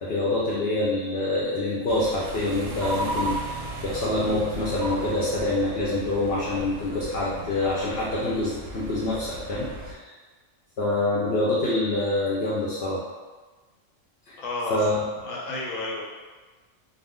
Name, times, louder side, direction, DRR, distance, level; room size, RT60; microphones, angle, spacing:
voice 1, 0.0-10.1 10.8-13.0 14.3-14.4 14.7-15.0, left 2 dB, 60° left, -6 dB, 0.7 m, -26 dB
sound 1, 1.9-9.9, right 1 dB, 65° right, 0.7 m, -35 dB
voice 2, 14.4-16.0, left 2 dB, 85° left, -2 dB, 1.0 m, -32 dB
2.5 x 2.1 x 3.5 m, 1.3 s
omnidirectional pair, 1.3 m